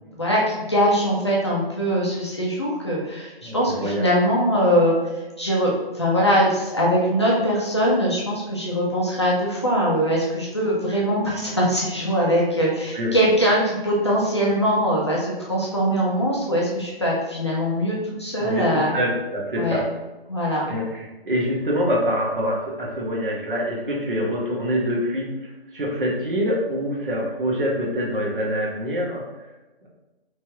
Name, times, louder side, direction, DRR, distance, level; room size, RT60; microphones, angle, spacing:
voice 1, 0.2-4.9 5.4-18.9 19.6-19.8 20.3-20.6, equal, 30° left, -5 dB, 0.5 m, -22 dB
voice 2, 3.4-4.1 12.9-13.1 18.4-19.8 20.6-25.3 25.7-29.2 29.8-29.9, equal, 60° right, -2 dB, 1.2 m, -25 dB
3.3 x 3.2 x 2.8 m, 1.1 s
hypercardioid pair, 170°, 31 cm